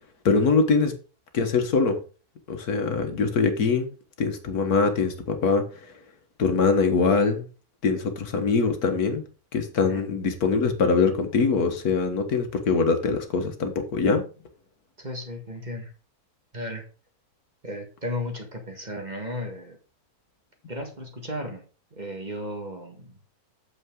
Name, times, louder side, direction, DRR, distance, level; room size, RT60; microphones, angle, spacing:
voice 1, 0.3-0.9 1.3-2.0 2.5-3.9 4.2-5.7 6.4-7.5 7.8-9.2 9.5-14.3, left 4 dB, 75° left, 1.8 m, -23 dB
voice 2, 15.0-15.9 16.5-16.8 17.6-19.8 20.7-21.6 22.0-23.1, left 1 dB, 30° right, 1.7 m, -34 dB
8.3 x 7.0 x 3.7 m
omnidirectional pair, 1.6 m